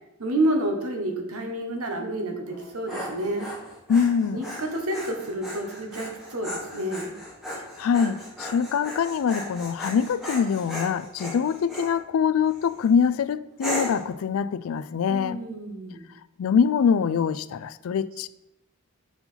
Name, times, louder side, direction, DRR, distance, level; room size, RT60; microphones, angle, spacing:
voice 1, 0.2-3.5 4.3-7.1 15.1-16.0, right 1 dB, 80° right, 1.3 m, -29 dB
Dog, 2.5-11.9 12.5-12.9 13.6-14.1, equal, ahead, 1.5 m, -36 dB
voice 2, 3.9-4.4 7.8-15.4 16.4-18.3, left 6 dB, 70° left, 0.3 m, -24 dB
5.5 x 4.7 x 5.6 m
head